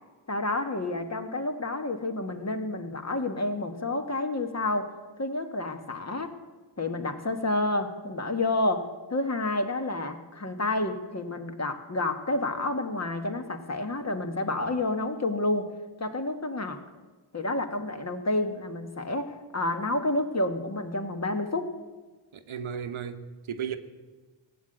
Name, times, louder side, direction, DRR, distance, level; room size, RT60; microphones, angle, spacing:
voice 1, 0.3-4.9 5.2-6.3 6.8-15.7 16.0-16.8 17.3-21.8, left 2 dB, 30° left, 1.4 m, -29 dB
voice 2, 22.3-23.8, right 7 dB, 75° right, 1.1 m, -35 dB
16.5 x 7.9 x 7.9 m
cardioid pair, 70°, 49 cm